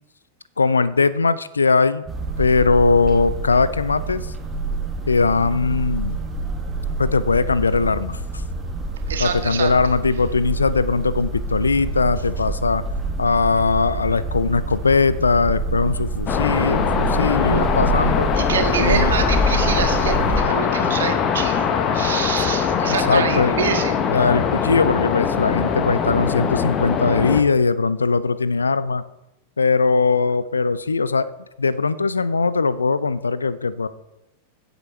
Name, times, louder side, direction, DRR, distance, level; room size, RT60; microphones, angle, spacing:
voice 1, 0.6-2.1 2.4-4.3 5.1-6.2 7.0-8.2 9.2-12.8 13.2-18.3 18.8-19.1 22.8-23.5 24.1-29.0 29.6-31.3 31.6-33.9, left 4 dB, 75° left, 17 dB, 0.6 m, -20 dB
sound 1, 2.1-20.4, right 2 dB, 15° right, 2.0 m, -27 dB
voice 2, 9.1-9.7 18.3-21.7 21.9-24.0, right 7 dB, 65° right, 5 dB, 1.7 m, -26 dB
sound 2, 16.3-27.4, left 7 dB, 30° left, 1.2 m, -22 dB
16.0 x 8.2 x 4.4 m, 0.93 s
figure-of-eight pair, 90°, 0 cm